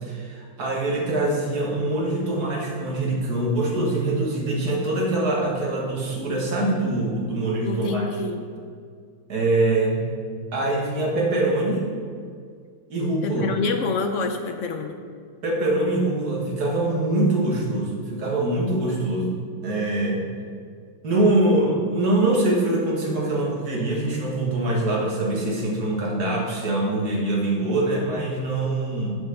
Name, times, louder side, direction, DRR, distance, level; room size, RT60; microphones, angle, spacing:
voice 1, 0.0-8.0 9.3-10.0 10.5-11.8 12.9-13.5 15.4-19.3 19.6-20.2 21.0-29.2, right 2 dB, 90° right, -2 dB, 2.1 m, -23 dB
voice 2, 7.6-8.4 13.2-14.9, left 4 dB, 65° left, 6 dB, 0.8 m, -27 dB
7.6 x 5.4 x 6.8 m, 2.1 s
omnidirectional pair, 1.6 m